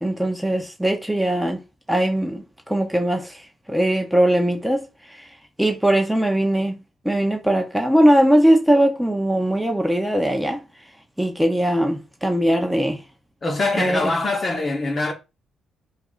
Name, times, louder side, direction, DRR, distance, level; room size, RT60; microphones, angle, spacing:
voice 1, 0.0-1.6 1.9-5.3 5.6-6.8 7.0-10.6 11.2-13.0 13.7-14.1, right 1 dB, ahead, 0.5 m, -20 dB
voice 2, 13.4-15.1, left 2 dB, 30° left, 0.9 m, -23 dB
4.6 x 2.4 x 2.4 m
cardioid pair, 90°, 0 cm